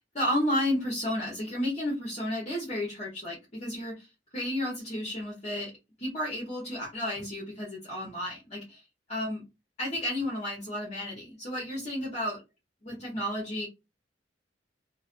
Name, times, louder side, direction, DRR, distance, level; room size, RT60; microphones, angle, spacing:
voice 1, 0.1-4.1 4.3-5.7 6.0-8.8 9.1-9.4 9.8-12.4 12.8-13.7, left 1 dB, 35° left, -4 dB, 0.8 m, -32 dB
2.4 x 2.1 x 2.4 m, 0.25 s
head